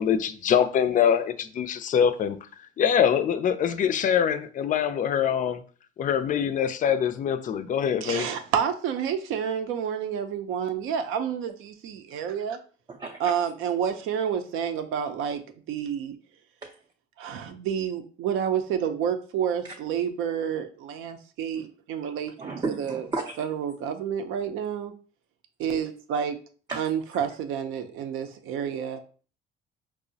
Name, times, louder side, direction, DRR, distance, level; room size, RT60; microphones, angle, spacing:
voice 1, 0.0-2.4 2.8-5.6 6.0-8.3, left 8 dB, 40° left, 0.4 m, -24 dB
voice 2, 8.0-12.6 13.2-15.4 15.7-16.1 17.2-22.3 22.8-23.0 23.4-24.9 25.6-26.4 26.8-29.0, right 8 dB, 75° right, 0.5 m, -29 dB
voice 3, 12.9-13.3 16.6-16.7 19.6-19.7 22.4-23.5 26.7-26.9, right 3 dB, 20° right, 0.4 m, -33 dB
4.6 x 2.0 x 2.6 m
supercardioid pair, 80°, 21 cm